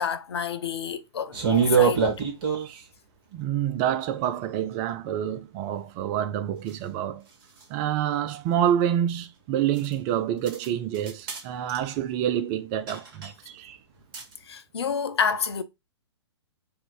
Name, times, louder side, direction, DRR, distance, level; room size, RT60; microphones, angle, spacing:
voice 1, 0.0-2.0 14.4-15.6, left 6 dB, 65° left, 0.6 m, -28 dB
sound 1, 1.3-2.8 6.7-6.8 7.6-7.7 9.8-9.9 10.5-10.7 10.9-11.4 11.7-11.9 12.9-13.3 14.1-14.3, right 6 dB, 50° right, 1.5 m, -24 dB
voice 2, 3.3-7.2 7.7-13.8, right 10 dB, 25° right, 0.3 m, -27 dB
3.5 x 2.5 x 4.4 m
figure-of-eight pair, 115°, 15 cm